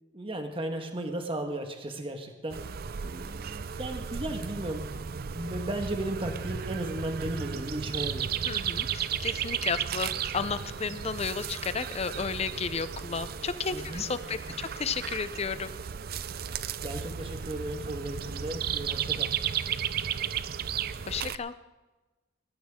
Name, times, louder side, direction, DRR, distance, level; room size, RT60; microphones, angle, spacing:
voice 1, 0.1-2.6 3.0-8.3 13.7-14.0 16.8-19.3, right 1 dB, 30° right, 4 dB, 1.5 m, -35 dB
sound 1, 2.5-21.4, right 7 dB, 55° right, 0.5 m, -34 dB
voice 2, 8.5-15.7 21.1-21.5, left 5 dB, 35° left, 13 dB, 0.6 m, -33 dB
20.5 x 13.5 x 3.7 m, 1.2 s
head